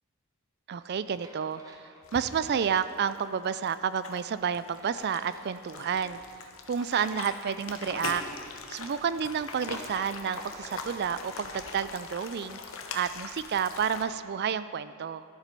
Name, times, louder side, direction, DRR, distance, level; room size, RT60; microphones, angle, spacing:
sound 1, 0.7-2.7 4.6-6.5 9.5-12.2, right 1 dB, 15° right, 0.8 m, -55 dB
voice 1, 0.7-6.2 6.7-8.2 8.7-12.6 12.9-15.2, right 7 dB, 45° right, 14 dB, 0.3 m, -30 dB
sound 2, 2.0-14.0, left 4 dB, 60° left, 0.9 m, -42 dB
13.0 x 7.4 x 5.3 m, 2.3 s
head